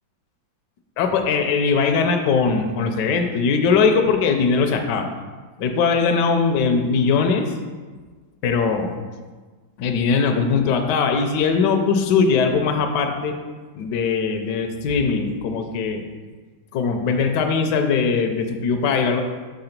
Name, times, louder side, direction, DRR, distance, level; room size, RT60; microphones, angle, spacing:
voice 1, 1.0-5.1 5.6-7.5 8.4-8.9 9.8-13.4 13.8-16.0 16.7-19.2, left 5 dB, 70° left, 5 dB, 1.1 m, -20 dB
5.7 x 3.8 x 5.8 m, 1.4 s
omnidirectional pair, 2.2 m